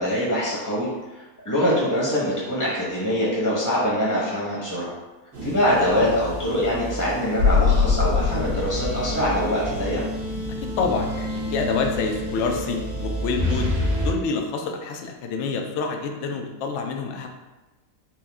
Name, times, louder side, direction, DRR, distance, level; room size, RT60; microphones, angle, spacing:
voice 1, 0.0-4.9 5.4-10.0, equal, 15° left, -7 dB, 0.8 m, -24 dB
sound 1, 5.3-14.1, left 3 dB, 90° right, 2.1 m, -26 dB
voice 2, 10.6-13.7 14.0-17.3, left 4 dB, 70° left, 3 dB, 0.7 m, -27 dB
4.6 x 2.6 x 3.5 m, 1.1 s
omnidirectional pair, 1.7 m